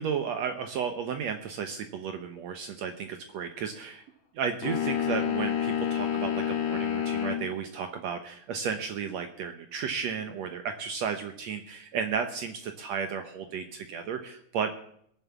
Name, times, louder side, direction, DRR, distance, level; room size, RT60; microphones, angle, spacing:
voice 1, 0.0-4.0 4.3-14.9, right 6 dB, 80° right, 7 dB, 1.5 m, -33 dB
sound 1, 4.6-7.5, left 9 dB, 55° left, 2.9 m, -28 dB
19.5 x 7.4 x 7.1 m, 0.68 s
omnidirectional pair, 4.3 m